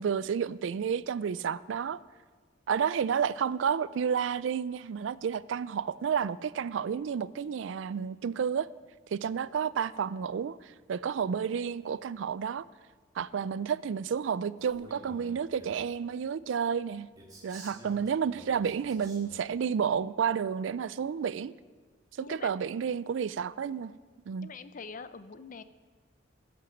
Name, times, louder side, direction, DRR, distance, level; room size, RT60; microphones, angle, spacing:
voice 1, 0.0-2.0 2.7-8.7 9.1-12.7 13.2-17.1 17.4-21.5 22.2-23.9 24.3-24.5, right 7 dB, 85° right, 18 dB, 0.4 m, -31 dB
Male speech man speaking, 14.6-15.9 17.2-19.6, right 1 dB, 20° right, 2.4 m, -51 dB
voice 2, 22.2-22.5 24.4-25.6, left 5 dB, 45° left, 13 dB, 0.5 m, -46 dB
15.0 x 6.0 x 7.2 m, 1.4 s
head